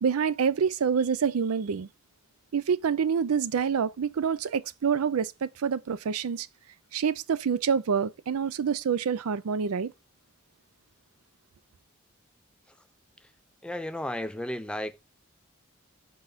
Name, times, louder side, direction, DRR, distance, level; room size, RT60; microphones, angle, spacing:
voice 1, 0.0-1.9 2.5-6.5 6.9-9.9, right 6 dB, 80° right, 0.4 m, -27 dB
voice 2, 13.6-15.0, left 1 dB, 5° left, 0.4 m, -34 dB
6.0 x 3.8 x 5.5 m
head